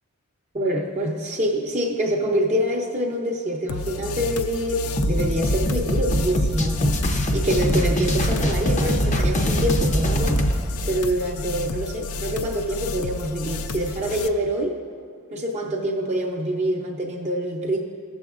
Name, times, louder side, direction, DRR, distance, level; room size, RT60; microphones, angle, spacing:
voice 1, 0.5-7.0 7.3-10.4 10.9-14.8 15.3-17.8, equal, 30° right, -1 dB, 0.5 m, -25 dB
sound 1, 3.7-14.3, left 4 dB, 80° left, 0.4 m, -32 dB
sound 2, 5.0-10.6, equal, 35° left, 0.6 m, -22 dB
16.0 x 7.0 x 2.4 m, 2.2 s
head